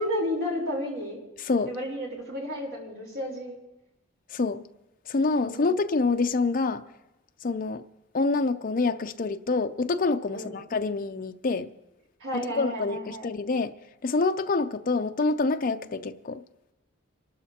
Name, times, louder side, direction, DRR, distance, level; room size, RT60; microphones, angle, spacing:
voice 1, 0.0-1.2 1.7-3.6 5.3-5.7 10.3-10.5 12.2-13.3, left 1 dB, 75° right, 4.0 m, -32 dB
voice 2, 1.4-1.7 4.3-4.6 5.1-6.8 7.4-7.8 8.1-11.7 12.6-13.7 14.0-16.4, left 3 dB, 40° left, 0.5 m, -26 dB
28.0 x 12.0 x 2.9 m
head